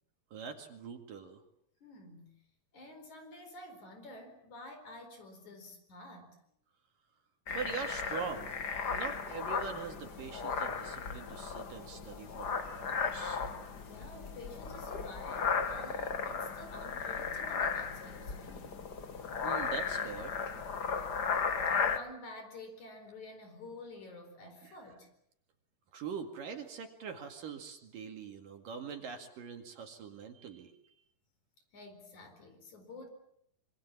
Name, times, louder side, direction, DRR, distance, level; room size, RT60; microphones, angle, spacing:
voice 1, 0.3-1.4 7.5-8.6 8.9-13.5 19.4-20.3 24.6-24.8 25.9-30.9, right 6 dB, 60° right, 5 dB, 3.6 m, -43 dB
voice 2, 1.8-2.4 2.7-6.4 13.8-18.8 21.7-25.1 31.7-33.1, left 2 dB, 50° left, 6 dB, 5.6 m, -50 dB
sound 1, 7.5-22.0, left 5 dB, 90° left, 0.9 m, -35 dB
26.5 x 25.0 x 7.4 m, 0.71 s
omnidirectional pair, 4.6 m